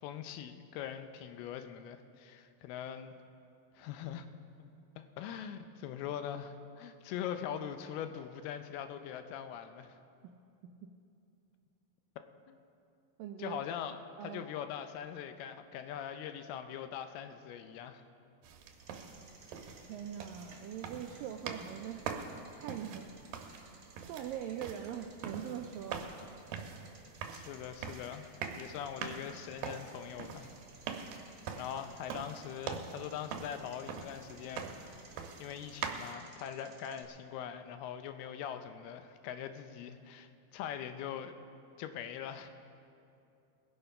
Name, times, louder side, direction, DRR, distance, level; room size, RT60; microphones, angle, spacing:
voice 1, 0.0-3.1 3.8-4.3 4.6-4.7 5.0-10.0 12.5-12.6 13.4-14.0 14.2-18.0 27.3-30.5 31.6-35.0 35.4-41.3 41.8-42.5, left 9 dB, 80° left, 8 dB, 2.5 m, -42 dB
voice 2, 13.2-13.6 14.2-14.4 19.9-22.1 22.5-23.1 23.5-26.1, right 9 dB, 90° right, 4 dB, 2.0 m, -42 dB
sound 1, 18.4-36.1, right 6 dB, 70° right, 2.2 m, -44 dB
Bicycle, 18.7-37.0, right 3 dB, 45° right, 1.7 m, -60 dB
21.0 x 8.1 x 5.5 m, 2.6 s
omnidirectional pair, 4.6 m